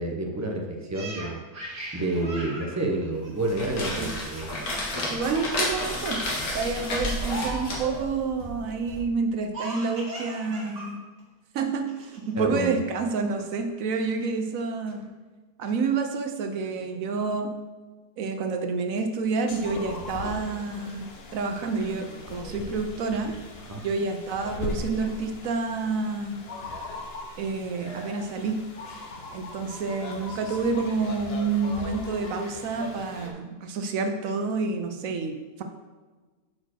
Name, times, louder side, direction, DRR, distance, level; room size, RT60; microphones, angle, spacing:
voice 1, 0.0-1.4 1.9-4.5 12.3-12.8 13.4-13.5 23.7-23.8, right 2 dB, 20° right, 1 dB, 0.5 m, -29 dB
Laughter, 0.9-4.0 4.4-4.7 5.0-5.6 6.1-6.4 7.2-8.1 9.5-10.9 11.2-11.3 11.9-12.4, right 1 dB, 50° right, 2.1 m, -39 dB
sound 1, 3.3-9.0, left 1 dB, 75° left, 2.0 m, -31 dB
voice 2, 5.1-6.2 6.5-11.0 11.5-15.1 15.6-17.5 18.2-23.4 23.8-26.4 27.4-28.6 29.3-35.6, right 4 dB, 70° right, 5 dB, 1.0 m, -28 dB
sound 2, 19.4-33.3, left 2 dB, 50° left, 1.0 m, -39 dB
6.0 x 4.4 x 6.3 m, 1.3 s
omnidirectional pair, 1.6 m